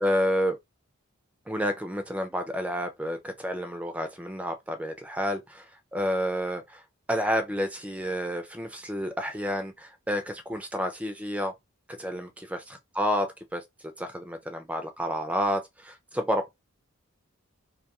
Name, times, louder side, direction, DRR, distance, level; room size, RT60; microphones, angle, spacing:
voice 1, 0.0-0.6 1.5-5.7 5.9-6.8 7.1-11.5 12.0-12.6 13.0-13.6 14.0-16.5, equal, 5° right, 0.3 m, -30 dB
2.6 x 2.2 x 2.9 m
head